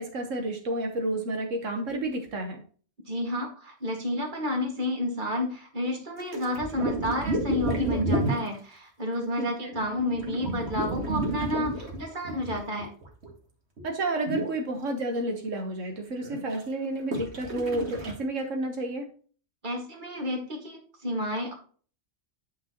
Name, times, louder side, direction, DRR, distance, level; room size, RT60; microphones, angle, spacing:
voice 1, 0.0-2.6 9.4-9.7 13.8-19.1, right 1 dB, 80° right, 3 dB, 1.6 m, -31 dB
voice 2, 3.1-12.9 19.6-21.5, left 1 dB, 40° right, 1 dB, 2.2 m, -31 dB
sound 1, 6.2-8.6 9.7-13.3 13.8-13.9 14.3-14.6 16.2-16.6 17.1-18.1, right 1 dB, 60° right, 2.1 m, -31 dB
10.0 x 6.0 x 3.0 m, 0.42 s
omnidirectional pair, 1.3 m